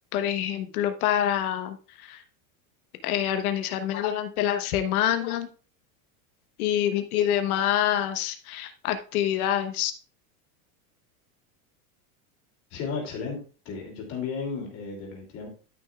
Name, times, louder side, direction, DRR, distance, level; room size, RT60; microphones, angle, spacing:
voice 1, 0.1-2.2 3.0-5.5 6.6-9.9, left 10 dB, 85° left, 7 dB, 1.2 m, -26 dB
voice 2, 12.7-13.4 13.6-15.5, left 5 dB, 35° left, 0 dB, 2.9 m, -34 dB
13.0 x 6.2 x 2.4 m, 0.37 s
supercardioid pair, 180°, 42 cm